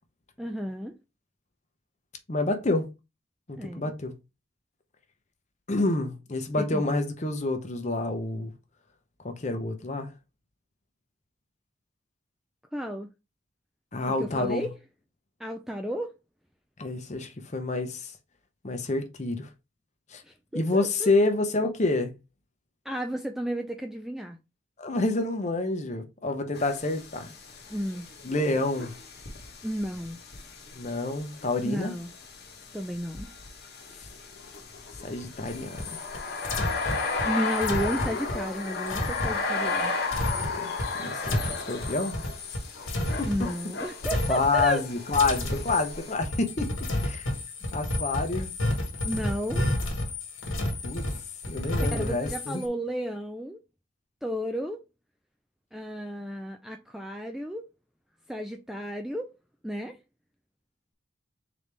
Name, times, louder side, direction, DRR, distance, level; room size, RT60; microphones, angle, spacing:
voice 1, 0.4-0.9 3.6-3.9 6.6-6.8 12.7-13.1 14.2-14.7 15.4-16.1 20.2-21.1 22.9-24.4 27.7-28.1 29.6-30.2 31.6-32.1 32.7-33.3 37.2-39.9 43.2-44.8 49.0-49.7 51.9-53.6 54.2-54.8 55.7-57.7 58.3-59.3 59.6-60.0, equal, ahead, 0.3 m, -33 dB
voice 2, 2.3-2.9 3.5-4.1 5.7-8.5 9.2-10.1 13.9-14.7 16.8-18.1 18.6-19.5 20.1-20.2 20.5-22.1 24.8-27.3 28.2-28.9 30.7-31.9 35.0-36.0 40.6-40.7 41.0-42.3 43.2-43.3 44.3-46.7 47.0-47.3 47.7-48.5 50.8-51.1 51.5-52.6, left 2 dB, 35° left, 0.7 m, -28 dB
sound 1, 26.5-46.1, left 4 dB, 50° left, 1.0 m, -35 dB
sound 2, 35.5-43.7 44.0-44.9 45.1-52.7, left 1 dB, 80° left, 1.2 m, -31 dB
3.9 x 3.3 x 3.3 m
head